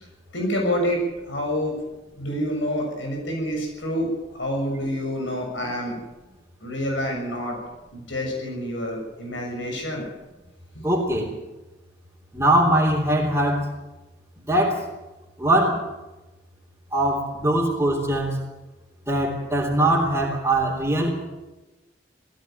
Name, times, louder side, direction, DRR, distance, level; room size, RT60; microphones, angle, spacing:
voice 1, 0.3-1.8 2.1-4.1 4.3-6.0 6.6-7.6 7.9-10.1, equal, 85° left, 1 dB, 6.9 m, -27 dB
voice 2, 10.8-11.3 12.3-13.6 14.5-14.8 15.4-15.8 16.9-18.4 19.1-21.2, right 1 dB, 15° right, -4 dB, 3.4 m, -21 dB
19.0 x 15.0 x 9.3 m, 1.1 s
head